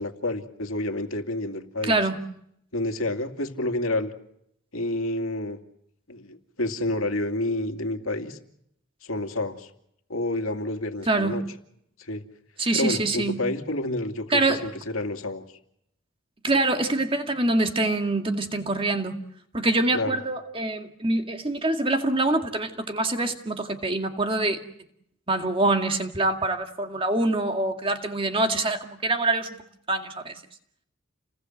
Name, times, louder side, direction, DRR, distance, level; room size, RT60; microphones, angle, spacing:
voice 1, 0.0-2.0 2.7-4.1 4.7-5.6 6.1-8.4 9.0-9.7 10.1-11.4 12.0-12.2 12.7-15.4 19.9-20.2, left 2 dB, 90° left, 6 dB, 2.5 m, -29 dB
voice 2, 1.9-2.2 11.1-11.4 12.6-13.4 14.3-14.6 16.4-19.2 19.5-24.6 25.3-29.6 29.9-30.4, right 2 dB, 25° right, 5 dB, 2.1 m, -25 dB
30.0 x 20.5 x 7.9 m, 0.74 s
head